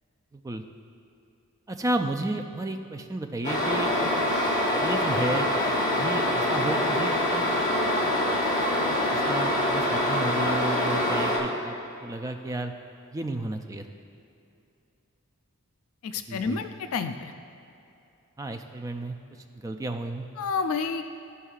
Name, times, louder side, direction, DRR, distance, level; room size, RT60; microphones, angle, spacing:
voice 1, 0.3-0.6 1.7-4.1 4.8-5.5 5.9-7.5 8.0-8.1 8.8-11.7 12.0-12.7 13.1-13.8 16.3-16.6 18.4-19.2 19.5-20.3, right 2 dB, 15° right, 5 dB, 0.3 m, -32 dB
sound 1, 3.4-11.4, left 1 dB, 35° left, 1.1 m, -25 dB
voice 2, 16.0-17.2 20.4-21.0, left 5 dB, 70° left, 8 dB, 0.3 m, -29 dB
12.5 x 5.5 x 2.4 m, 2.8 s
head